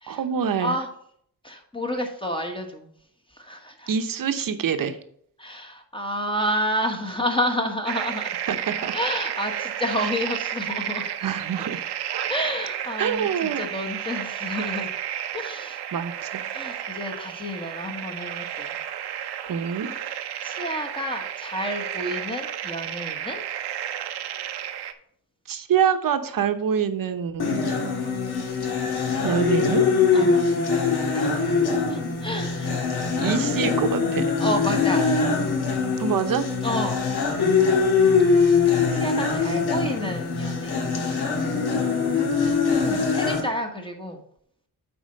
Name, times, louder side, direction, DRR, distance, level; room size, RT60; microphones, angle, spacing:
voice 1, 0.1-0.8 3.9-5.0 8.5-8.9 10.0-10.1 11.2-11.8 13.0-13.6 15.9-16.5 19.5-19.9 25.5-27.5 29.2-29.8 33.2-34.2 36.0-36.5, right 7 dB, 60° right, 9 dB, 0.8 m, -25 dB
voice 2, 1.4-2.9 3.3-3.9 5.4-8.3 8.9-11.1 12.3-14.9 15.3-15.8 16.5-18.8 20.4-23.4 28.8-29.4 30.1-30.5 30.9-31.4 31.9-32.9 33.2-33.4 34.4-35.1 36.6-37.0 38.9-40.8 42.7-44.2, equal, 15° left, 2 dB, 1.1 m, -30 dB
sound 1, 7.9-24.9, right 10 dB, 90° right, 0.7 m, -32 dB
sound 2, 27.4-43.4, left 5 dB, 75° left, 1.6 m, -22 dB
8.3 x 4.3 x 5.2 m, 0.66 s
wide cardioid pair, 110°, 39 cm